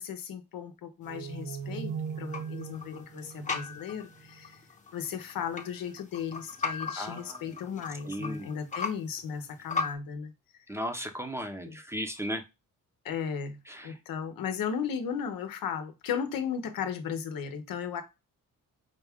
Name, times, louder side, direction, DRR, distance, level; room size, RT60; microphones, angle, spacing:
voice 1, 0.0-4.6 4.9-10.3 11.6-11.8 13.0-13.6 13.8-18.0, left 7 dB, 90° left, 0.8 m, -35 dB
sound 1, 1.0-9.9, left 4 dB, 20° left, 0.8 m, -38 dB
sound 2, 1.1-4.5, right 6 dB, 55° right, 0.6 m, -39 dB
voice 2, 6.9-8.5 10.7-12.4 13.7-13.9, equal, 10° right, 0.7 m, -36 dB
5.2 x 2.3 x 3.4 m
cardioid pair, 105°, 33 cm